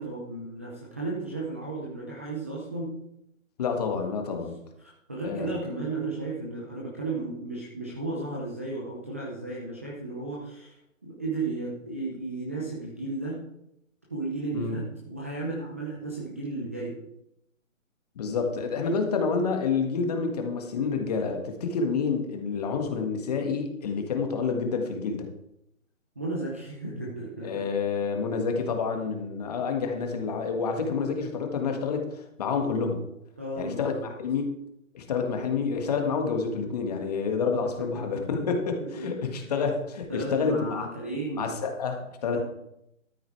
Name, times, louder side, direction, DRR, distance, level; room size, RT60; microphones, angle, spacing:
voice 1, 0.0-3.0 4.3-4.4 4.8-13.4 14.1-17.0 26.2-27.7 33.4-34.1 38.1-38.2 38.8-39.5 40.1-41.5 42.2-42.4, right 3 dB, 10° right, -5 dB, 0.6 m, -34 dB
voice 2, 3.6-4.6 5.2-5.5 14.5-14.8 18.1-25.3 27.4-33.1 33.6-34.5 34.9-40.9 41.4-42.4, left 5 dB, 30° left, 4 dB, 1.6 m, -28 dB
13.0 x 7.9 x 4.6 m, 0.81 s
hypercardioid pair, 160°, 41 cm